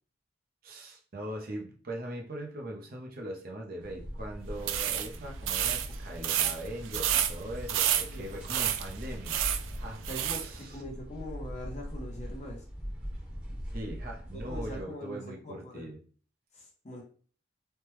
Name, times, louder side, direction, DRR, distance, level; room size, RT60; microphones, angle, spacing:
voice 1, 0.6-9.4 9.8-10.8 13.7-16.0, right 1 dB, 50° right, 0 dB, 0.6 m, -41 dB
sound 1, 3.8-14.8, equal, 5° right, 0.9 m, -41 dB
sound 2, 4.6-10.5, right 10 dB, 85° right, 0.4 m, -31 dB
voice 2, 10.0-12.6 14.3-15.9 16.5-17.0, left 1 dB, 35° left, 1 dB, 0.7 m, -42 dB
3.2 x 2.2 x 3.0 m, 0.41 s
head